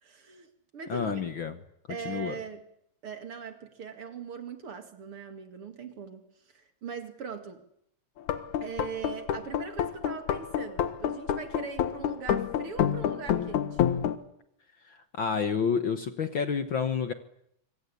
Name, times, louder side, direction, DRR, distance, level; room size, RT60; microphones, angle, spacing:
voice 1, 0.0-1.2 1.9-2.6 3.0-7.6 8.6-13.9, right 6 dB, 50° right, 8 dB, 2.9 m, -41 dB
voice 2, 0.9-1.6 2.1-2.4 14.8-17.1, left 6 dB, 50° left, 9 dB, 1.7 m, -29 dB
sound 1, 8.2-14.2, left 9 dB, 85° left, 2.9 m, -28 dB
26.0 x 25.0 x 8.5 m, 0.73 s
omnidirectional pair, 3.3 m